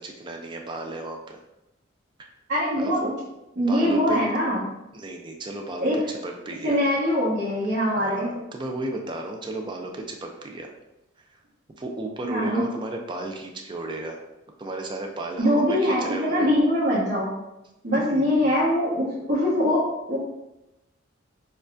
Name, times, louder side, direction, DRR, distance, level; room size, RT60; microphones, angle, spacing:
voice 1, 0.0-1.4 2.2-2.3 2.8-3.1 3.6-4.2 4.9-6.8 8.0-10.7 11.2-11.4 11.8-14.2 14.6-16.5 18.1-18.7, right 2 dB, 25° right, 2 dB, 0.4 m, -34 dB
voice 2, 2.5-3.0 3.6-4.7 5.8-6.0 6.6-8.3 12.2-12.6 15.4-17.3 17.8-19.8 20.1-20.2, equal, 60° right, -12 dB, 1.3 m, -22 dB
6.5 x 2.3 x 2.5 m, 0.94 s
head